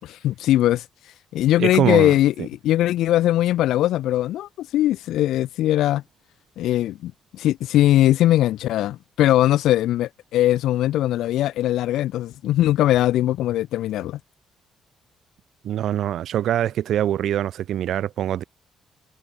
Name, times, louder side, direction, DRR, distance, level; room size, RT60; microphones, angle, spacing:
voice 1, 0.0-6.0 6.6-14.2, left 13 dB, 85° left, 6.5 m, -20 dB
voice 2, 1.6-2.1 2.4-2.5 15.6-18.4, right 11 dB, 75° right, 3.3 m, -23 dB
cardioid pair, 90°, 0 cm